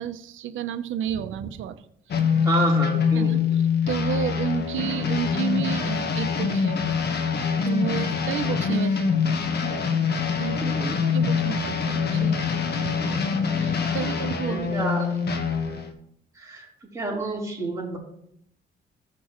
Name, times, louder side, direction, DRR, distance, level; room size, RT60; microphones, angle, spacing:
voice 1, 0.0-1.8 2.1-2.2 3.1-3.4 3.9-6.8 7.6-9.2 9.6-9.8 10.4-10.8 11.1-14.9, right 10 dB, 75° right, 11 dB, 0.8 m, -31 dB
sound 1, 2.1-15.9, left 6 dB, 55° left, 1.4 m, -24 dB
voice 2, 2.4-3.6 10.6-11.0 14.0-14.1 14.5-15.1 16.3-16.7 16.9-18.0, right 3 dB, 15° right, -4 dB, 3.9 m, -29 dB
15.0 x 6.1 x 3.1 m, 0.70 s
cardioid pair, 90°, 20 cm